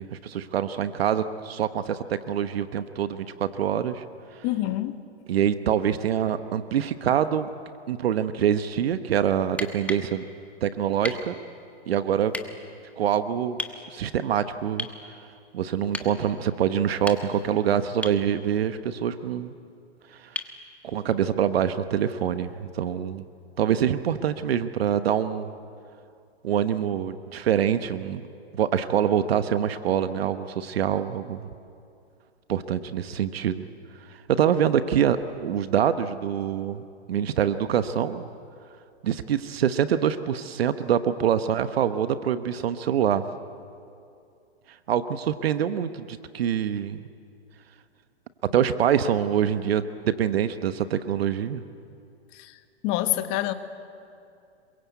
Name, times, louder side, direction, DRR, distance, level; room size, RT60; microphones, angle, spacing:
voice 1, 0.0-4.0 5.3-7.5 7.9-10.2 10.6-11.3 11.9-12.3 13.0-13.6 13.9-14.9 15.5-19.5 20.1-20.3 20.8-23.2 23.6-25.5 26.4-28.2 28.5-31.4 32.5-33.6 34.1-36.8 37.1-38.2 39.0-43.3 44.9-47.1 48.5-51.6, right 9 dB, 65° right, 11 dB, 1.2 m, -25 dB
voice 2, 4.4-5.0 52.3-52.6 52.8-53.5, left 15 dB, 35° left, 9 dB, 1.5 m, -26 dB
sound 1, 9.5-10.1 11.0-11.3 12.3-12.5 13.6-13.8 14.8-15.0 15.9-16.1 16.9-17.5 18.0-18.2 20.4-20.6 22.4-22.5, left 2 dB, 5° left, 1.4 m, -34 dB
26.0 x 23.0 x 8.3 m, 2.5 s
hypercardioid pair, 125°, 32 cm